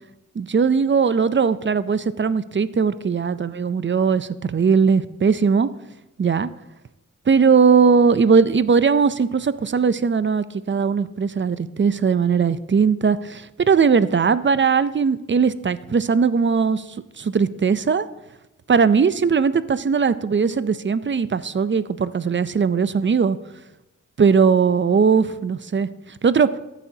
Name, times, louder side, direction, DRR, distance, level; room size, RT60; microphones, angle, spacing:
voice 1, 0.4-5.7 6.2-6.5 7.3-16.8 17.2-18.1 18.7-23.4 24.2-25.9 26.2-26.5, right 5 dB, 40° right, 15 dB, 0.5 m, -19 dB
14.5 x 8.3 x 2.8 m, 0.96 s
wide cardioid pair, 70°, 31 cm